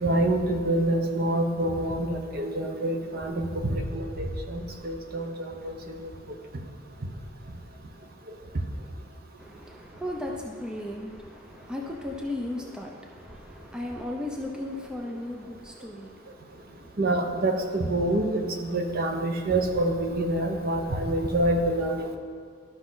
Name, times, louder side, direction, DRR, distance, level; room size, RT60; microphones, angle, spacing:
voice 1, 0.0-5.3 5.6-6.1 17.0-22.2, right 1 dB, 45° right, 4 dB, 0.8 m, -26 dB
voice 2, 9.4-16.9, left 1 dB, 5° right, 0 dB, 0.6 m, -36 dB
12.5 x 6.0 x 3.9 m, 2.1 s
head